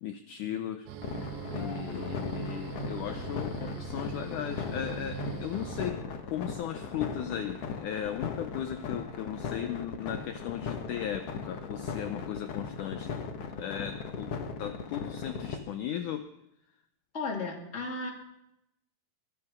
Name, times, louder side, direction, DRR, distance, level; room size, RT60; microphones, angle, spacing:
voice 1, 0.0-0.9 1.1-6.0 6.3-13.1 13.5-14.3 14.6-16.3, left 10 dB, 75° left, 7 dB, 2.0 m, -37 dB
sound 1, 0.9-5.9, right 7 dB, 70° right, 2.0 m, -40 dB
sound 2, 1.0-15.6, left 6 dB, 55° left, 1.9 m, -37 dB
sound 3, 1.1-6.4 8.2-9.2, left 2 dB, 90° left, 4.8 m, -47 dB
voice 2, 17.1-18.1, left 3 dB, 20° left, 1 dB, 2.4 m, -35 dB
23.0 x 10.0 x 6.1 m, 0.82 s
omnidirectional pair, 4.2 m